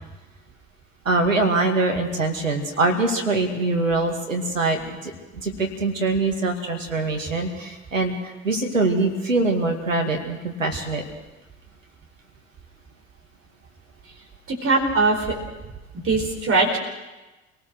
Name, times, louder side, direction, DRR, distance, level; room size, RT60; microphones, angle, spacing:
voice 1, 1.0-11.0, right 3 dB, 85° right, 2 dB, 2.4 m, -23 dB
voice 2, 14.5-15.4 16.0-16.8, right 3 dB, 35° right, 1 dB, 4.7 m, -21 dB
28.5 x 18.5 x 6.4 m, 1.1 s
figure-of-eight pair, 60°, 38 cm